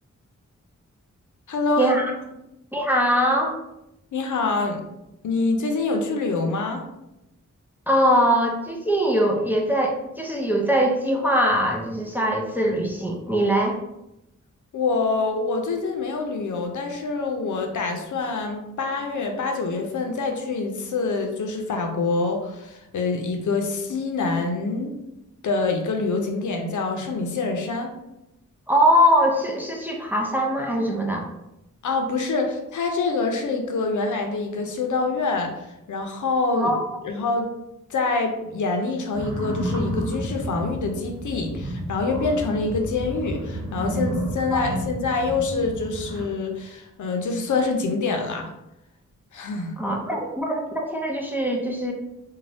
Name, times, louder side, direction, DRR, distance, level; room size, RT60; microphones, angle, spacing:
voice 1, 1.5-1.9 4.1-4.8 5.2-6.8 14.7-24.9 25.4-27.9 31.8-35.5 35.9-36.7 37.0-37.5 37.9-48.5 49.3-49.7, left 3 dB, 75° left, 3 dB, 0.5 m, -26 dB
voice 2, 2.7-3.6 7.9-13.8 28.7-31.3 36.6-36.8 44.5-44.7 49.8-51.9, equal, 5° right, 0 dB, 0.4 m, -22 dB
Bison - Yellowstone National Park, 39.1-46.2, equal, 50° right, 1.0 m, -31 dB
2.6 x 2.2 x 3.3 m, 0.89 s
wide cardioid pair, 95°, 30 cm